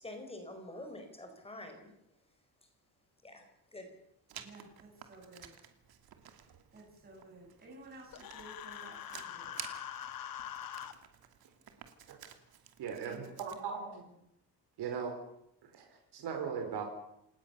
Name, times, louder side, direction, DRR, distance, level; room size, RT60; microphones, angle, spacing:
voice 1, 0.0-1.9 3.2-3.5 3.7-3.9, left 1 dB, 15° left, 5 dB, 4.5 m, -46 dB
Writing, 4.3-13.6, right 9 dB, 65° right, 2.7 m, -52 dB
voice 2, 4.4-5.5 6.7-9.6 12.9-13.7, right 2 dB, 25° right, -1 dB, 7.2 m, -53 dB
Human voice, 8.1-10.9, left 10 dB, 60° left, 1.8 m, -43 dB
voice 3, 12.8-14.1 14.8-15.2 15.6-16.8, right 6 dB, 90° right, 4 dB, 4.6 m, -39 dB
28.5 x 18.5 x 6.9 m, 0.80 s
cardioid pair, 180°, 38 cm